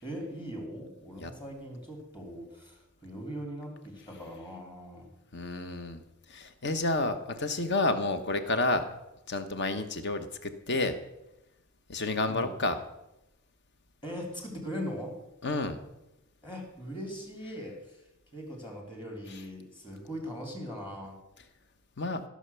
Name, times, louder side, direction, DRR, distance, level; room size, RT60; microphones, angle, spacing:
voice 1, 0.0-5.1 12.3-12.5 14.0-15.2 16.4-18.0 18.3-21.2, equal, 20° left, 0 dB, 2.9 m, -40 dB
voice 2, 5.3-6.0 6.3-8.9 9.3-11.0 11.9-12.8 15.4-15.8 22.0-22.2, left 2 dB, 55° left, 9 dB, 1.0 m, -30 dB
14.5 x 6.5 x 6.9 m, 0.91 s
head